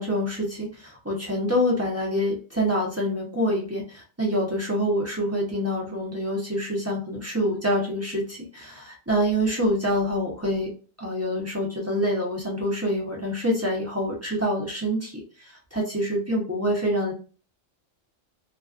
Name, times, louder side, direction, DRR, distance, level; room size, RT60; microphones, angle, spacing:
voice 1, 0.0-10.7 11.0-17.1, equal, 25° right, -3 dB, 0.3 m, -26 dB
2.4 x 2.2 x 2.4 m, 0.37 s
omnidirectional pair, 1.4 m